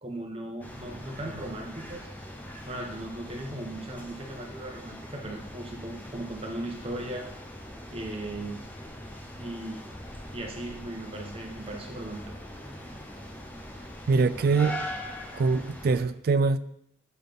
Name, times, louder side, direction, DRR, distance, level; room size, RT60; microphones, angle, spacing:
voice 1, 0.0-2.1 2.7-7.3 7.9-8.6 9.4-9.9 10.3-12.2, right 1 dB, 30° right, 1.1 m, -37 dB
sound 1, 0.6-16.0, equal, 10° left, 0.8 m, -42 dB
voice 2, 14.1-14.8 15.3-16.6, right 4 dB, 50° right, 0.3 m, -23 dB
6.9 x 4.0 x 5.1 m
head